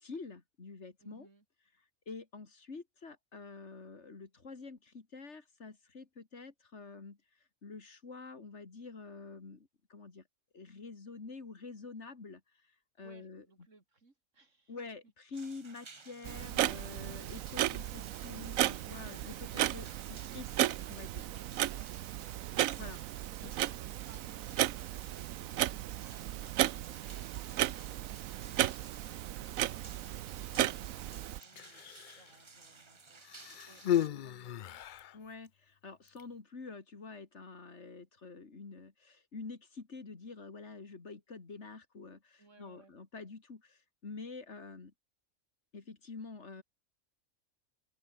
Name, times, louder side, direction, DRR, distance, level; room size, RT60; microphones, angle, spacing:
voice 1, 0.0-1.3 2.1-7.2 7.6-10.2 10.5-12.4 13.0-13.4 14.7-21.2 22.8-23.0 35.1-44.9 45.7-46.6, left 4 dB, 55° left, 2.6 m, -47 dB
voice 2, 1.0-1.5 13.0-14.8 15.0-15.1 23.4-23.8 30.4-33.2 33.7-34.8 42.4-42.9, right 3 dB, 65° right, 3.5 m, -64 dB
sound 1, 15.3-34.1, right 4 dB, 25° right, 0.9 m, -56 dB
Clock, 16.2-31.4, right 13 dB, 80° right, 1.0 m, -35 dB
Human voice, 31.4-32.3 33.2-35.2 36.1-36.2, left 11 dB, 85° left, 0.4 m, -35 dB
open air
omnidirectional pair, 1.4 m